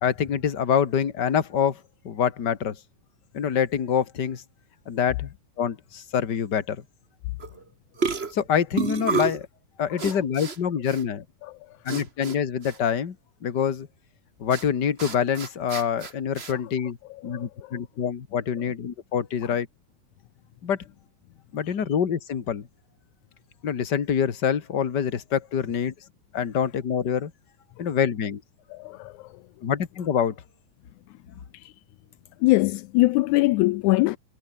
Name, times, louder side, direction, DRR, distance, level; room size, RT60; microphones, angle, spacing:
voice 1, 0.0-2.8 3.3-4.4 4.9-6.8 8.3-9.5 9.8-11.2 11.8-13.2 13.4-13.9 14.4-17.0 17.2-19.7 20.6-20.8 21.5-22.7 23.6-25.9 26.3-27.3 27.8-28.4 29.6-30.4, left 8 dB, 35° left, 2.0 m, -26 dB
sound 1, 7.4-7.6 8.0-9.4 10.0-10.6 10.9-11.0 11.9-12.4 12.6-12.8 14.5-14.6 15.0-16.5, right 4 dB, 40° right, 0.8 m, -30 dB
voice 2, 28.8-29.1 32.4-34.2, left 20 dB, 85° left, 1.7 m, -21 dB
omnidirectional pair, 3.9 m